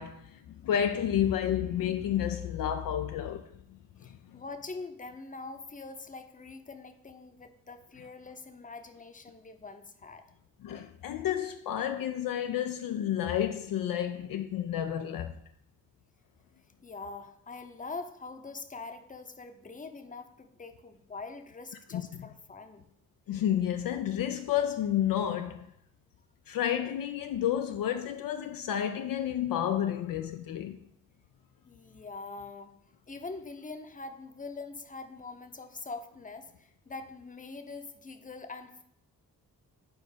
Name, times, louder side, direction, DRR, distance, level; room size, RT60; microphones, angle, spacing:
voice 1, 0.0-3.5 4.0-4.2 10.6-15.4 21.9-22.0 23.3-25.7 26.5-30.8, left 10 dB, 65° left, 0.5 m, -30 dB
voice 2, 4.0-10.2 16.8-22.9 31.6-32.8 33.1-38.8, left 3 dB, 20° left, 0.7 m, -43 dB
4.4 x 4.4 x 5.0 m
supercardioid pair, 45°, 37 cm